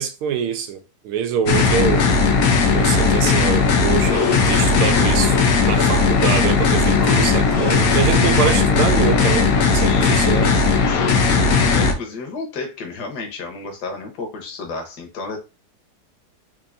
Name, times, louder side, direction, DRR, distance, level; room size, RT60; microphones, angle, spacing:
voice 1, 0.0-2.1 2.7-5.4 5.6-10.5, right 8 dB, 80° right, 1.5 m, -24 dB
sound 1, 1.5-11.9, left 4 dB, 80° left, 0.8 m, -17 dB
sound 2, 4.2-9.5, left 1 dB, 25° left, 1.0 m, -38 dB
voice 2, 9.7-15.4, left 3 dB, 55° left, 1.4 m, -33 dB
4.6 x 2.7 x 2.6 m
omnidirectional pair, 2.3 m